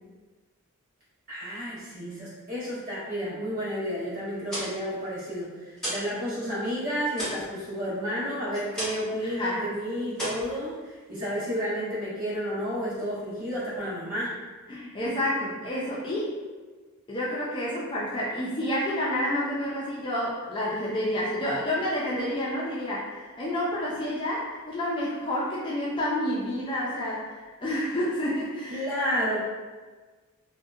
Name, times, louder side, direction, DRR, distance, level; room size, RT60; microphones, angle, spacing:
voice 1, 1.3-14.3 28.7-29.4, equal, 40° right, -10 dB, 1.1 m, -31 dB
sound 1, 4.3-6.2 6.5-9.2 9.5-9.8 10.1-11.2, equal, 5° left, 1.0 m, -35 dB
voice 2, 9.2-9.7 14.7-16.3 17.1-28.9, left 1 dB, 20° left, -6 dB, 0.3 m, -29 dB
2.7 x 2.1 x 2.3 m, 1.3 s
head